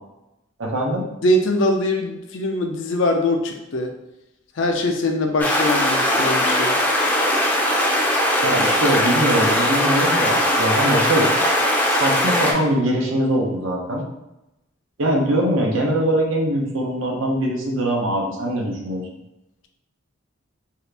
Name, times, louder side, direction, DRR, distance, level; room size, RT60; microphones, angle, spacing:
voice 1, 0.6-1.1 8.4-11.3 11.9-14.0 15.0-19.1, right 1 dB, 80° right, -1 dB, 0.7 m, -22 dB
voice 2, 1.2-3.9 4.6-6.8, left 1 dB, 70° left, 4 dB, 0.5 m, -22 dB
sound 1, 5.4-12.5, left 1 dB, 10° left, 0.4 m, -19 dB
2.7 x 2.4 x 3.3 m, 0.91 s
head